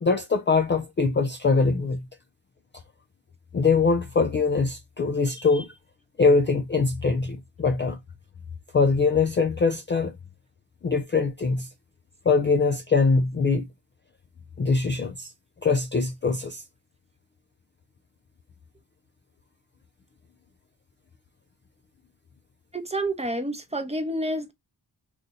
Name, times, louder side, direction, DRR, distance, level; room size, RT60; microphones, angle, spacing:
voice 1, 0.0-2.0 3.5-5.7 6.2-8.0 8.7-10.1 10.8-11.7 12.3-13.6 14.6-15.3 15.6-16.6, left 4 dB, 30° left, 0.3 m, -22 dB
voice 2, 22.7-24.5, right 1 dB, 15° right, 0.7 m, -29 dB
2.6 x 2.4 x 3.9 m
cardioid pair, 55°, 45 cm